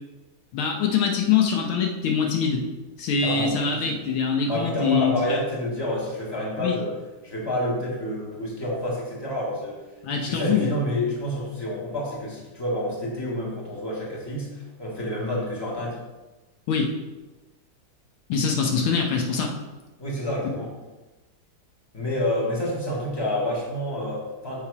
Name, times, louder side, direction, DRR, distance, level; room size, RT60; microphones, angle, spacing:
voice 1, 0.5-2.7 3.0-5.4 6.6-6.8 10.0-10.7 16.7-16.9 18.3-19.5, left 6 dB, 80° left, 1 dB, 1.7 m, -24 dB
voice 2, 3.2-4.0 4.5-7.0 7.2-9.8 10.1-16.0 20.0-20.7 21.9-24.7, left 1 dB, 10° left, -5 dB, 1.6 m, -28 dB
7.2 x 3.8 x 4.8 m, 1.1 s
omnidirectional pair, 2.3 m